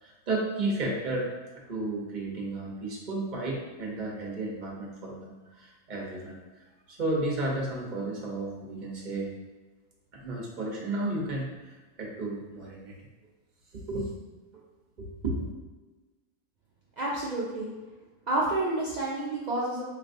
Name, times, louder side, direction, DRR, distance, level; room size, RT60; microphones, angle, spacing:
voice 1, 0.0-6.4 6.9-9.3 10.1-12.9 13.7-14.2 15.0-15.5, right 2 dB, 40° right, -2 dB, 0.8 m, -33 dB
voice 2, 17.0-17.7 18.3-19.8, right 2 dB, 85° right, -5 dB, 0.3 m, -29 dB
4.4 x 3.3 x 2.5 m, 1.2 s
omnidirectional pair, 1.5 m